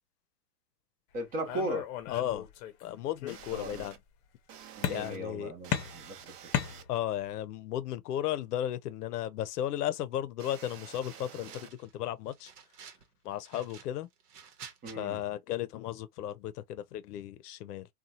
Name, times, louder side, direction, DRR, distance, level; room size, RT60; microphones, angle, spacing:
voice 1, 1.1-1.9 3.5-3.9 4.8-6.3 14.8-15.2, right 1 dB, 20° right, 0.6 m, -37 dB
sound 1, 1.5-2.8 3.2-3.9 4.8-5.3 5.7-7.3, left 10 dB, 40° left, 0.7 m, -35 dB
voice 2, 2.1-2.4 2.8-4.0 4.9-5.5 6.9-11.7 11.9-12.5 13.2-14.1 15.0-17.9, left 12 dB, 75° left, 0.6 m, -35 dB
sound 2, 2.1-2.2 3.3-4.0 4.5-5.2 5.6-6.8 10.4-11.7, right 9 dB, 55° right, 0.8 m, -50 dB
sound 3, 10.9-11.9 12.3-13.1 13.4-15.0, right 7 dB, 75° right, 1.0 m, -51 dB
2.8 x 2.3 x 2.6 m
hypercardioid pair, 125°, 47 cm